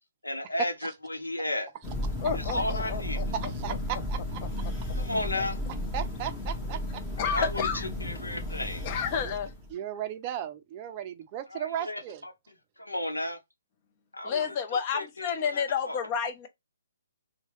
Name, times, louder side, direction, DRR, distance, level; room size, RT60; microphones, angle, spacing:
voice 1, 0.2-1.7 2.3-3.2 5.0-5.6 7.2-8.9 11.5-12.3 12.8-13.4 14.1-16.0, left 1 dB, 85° left, 0.8 m, -34 dB
Thunder, 1.8-9.7, left 1 dB, 10° left, 0.9 m, -34 dB
voice 2, 2.2-3.2 7.2-7.8 8.8-9.5 14.2-16.5, left 6 dB, 35° left, 0.6 m, -30 dB
voice 3, 3.3-4.4 5.9-7.0 9.2-9.3 9.7-12.2, right 10 dB, 30° right, 0.4 m, -36 dB
3.0 x 2.2 x 2.9 m
figure-of-eight pair, 130°, 0 cm